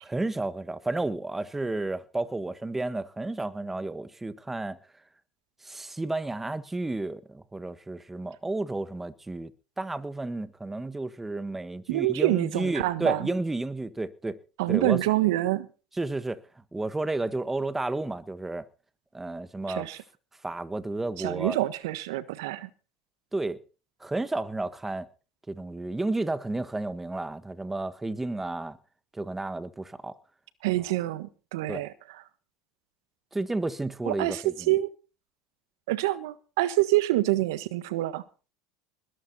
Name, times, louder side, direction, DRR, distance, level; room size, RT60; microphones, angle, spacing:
voice 1, 0.0-4.8 5.6-9.5 9.8-14.4 14.7-15.0 16.0-16.4 16.7-18.6 19.1-19.9 20.4-21.6 23.3-23.6 24.0-25.1 25.5-28.8 29.1-30.2 31.7-31.8 33.3-34.7, right 2 dB, 10° right, 1.5 m, -32 dB
voice 2, 11.9-13.3 14.6-15.7 19.7-20.0 21.2-22.7 30.6-31.9 34.1-34.9 35.9-38.2, right 17 dB, 75° right, 1.4 m, -26 dB
20.5 x 11.5 x 4.3 m
hypercardioid pair, 90°, 2 cm